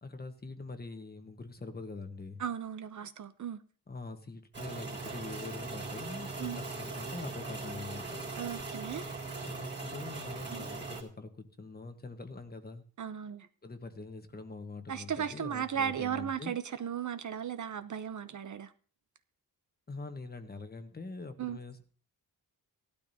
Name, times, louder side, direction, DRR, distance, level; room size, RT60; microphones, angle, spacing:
voice 1, 0.0-2.4 3.9-8.3 9.4-12.8 13.6-16.5 19.9-21.8, left 3 dB, 25° left, 1.2 m, -44 dB
voice 2, 2.4-3.6 6.4-6.6 8.4-9.1 10.5-10.6 13.0-13.5 14.9-18.7 21.4-21.6, right 8 dB, 50° right, 0.7 m, -36 dB
sound 1, 4.5-11.0, right 3 dB, 30° right, 3.4 m, -40 dB
17.0 x 12.0 x 2.8 m
wide cardioid pair, 125°, 37 cm